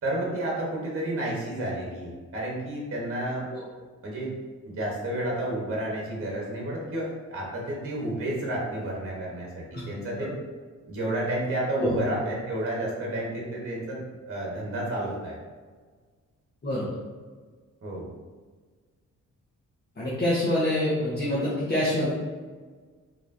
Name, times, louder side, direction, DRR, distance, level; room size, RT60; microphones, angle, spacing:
voice 1, 0.0-3.5 4.0-4.3 4.6-10.3 10.9-14.0 14.3-15.4 17.8-18.1, right 1 dB, 45° right, -3 dB, 1.2 m, -31 dB
voice 2, 20.0-22.1, left 1 dB, 30° left, -9 dB, 1.2 m, -25 dB
4.8 x 3.0 x 2.6 m, 1.5 s
cardioid pair, 95°, 31 cm